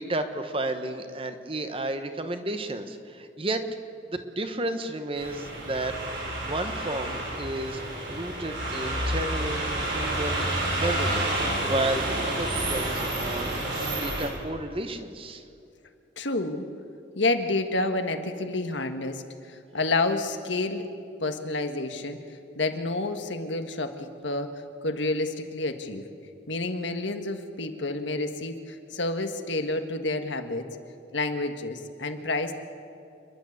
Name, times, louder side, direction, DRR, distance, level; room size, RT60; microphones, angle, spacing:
voice 1, 0.0-3.6 4.1-7.8 8.1-11.3 11.6-13.6 13.9-15.4, right 2 dB, 30° right, 8 dB, 1.2 m, -32 dB
sound 1, 5.2-14.3, right 1 dB, 70° right, 6.9 m, -29 dB
voice 2, 16.2-16.6 17.1-19.2 19.5-20.8 21.2-26.0 26.5-30.6 31.1-32.5, left 2 dB, 75° left, 7 dB, 1.6 m, -29 dB
28.5 x 11.5 x 8.2 m, 2.5 s
head